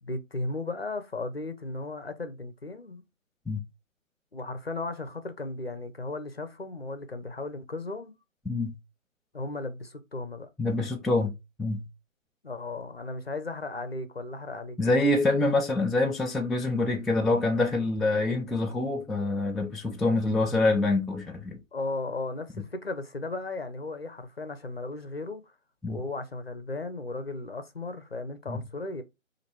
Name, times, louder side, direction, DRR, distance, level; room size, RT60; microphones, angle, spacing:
voice 1, 0.0-3.0 4.3-8.1 9.3-10.5 12.4-14.8 21.7-25.4 25.9-29.0, left 2 dB, 50° left, 0.5 m, -35 dB
voice 2, 8.5-8.8 10.6-11.9 14.8-21.6 25.8-26.0 28.5-28.6, left 2 dB, ahead, 0.3 m, -26 dB
2.9 x 2.6 x 4.3 m
figure-of-eight pair, 175°, 40 cm